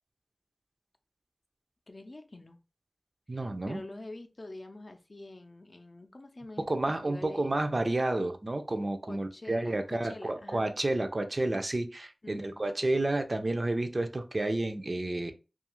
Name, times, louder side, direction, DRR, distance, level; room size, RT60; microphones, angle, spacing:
voice 1, 1.9-2.6 3.3-3.4 3.7-7.5 9.1-10.7 12.2-12.6, left 2 dB, 55° left, 0.4 m, -46 dB
voice 2, 3.3-3.8 6.6-15.3, right 2 dB, 50° right, 0.4 m, -30 dB
2.4 x 2.3 x 2.9 m
cardioid pair, 40°, 0 cm